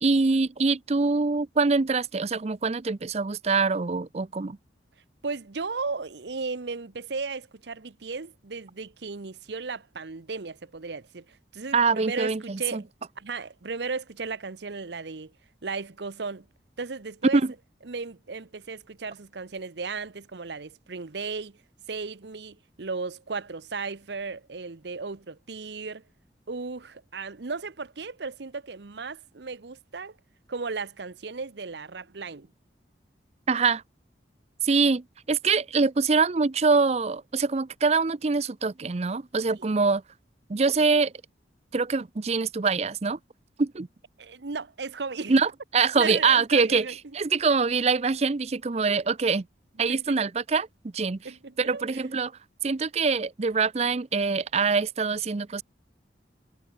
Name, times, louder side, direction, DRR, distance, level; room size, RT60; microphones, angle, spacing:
voice 1, 0.0-4.6 11.7-12.8 33.5-33.8 34.6-40.0 40.5-41.1 41.7-43.2 43.6-43.9 45.3-46.9 47.1-49.5 49.8-50.7 50.9-51.2 51.6-52.3 52.6-55.6, right 4 dB, 35° right, 0.5 m, -24 dB
voice 2, 5.2-12.8 13.2-15.3 15.6-16.5 16.8-17.4 17.9-21.6 21.9-26.0 26.5-30.1 30.5-32.5 44.2-45.3 46.0-46.9 49.9-50.2 51.2-52.0, right 4 dB, 75° right, 0.9 m, -35 dB
head